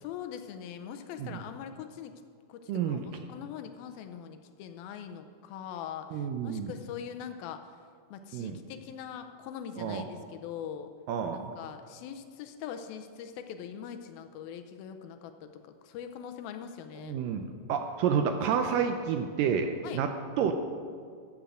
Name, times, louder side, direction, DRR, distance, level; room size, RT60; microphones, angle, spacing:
voice 1, 0.0-2.2 2.5-7.6 8.1-10.9 11.6-17.2 19.8-20.0, left 8 dB, 85° left, 7 dB, 2.4 m, -42 dB
voice 2, 2.7-3.0 6.1-6.7 8.3-8.6 9.8-10.0 11.1-11.5 17.0-20.1 20.4-20.6, right 7 dB, 80° right, 6 dB, 2.0 m, -29 dB
14.5 x 7.8 x 6.3 m, 2.1 s
omnidirectional pair, 4.5 m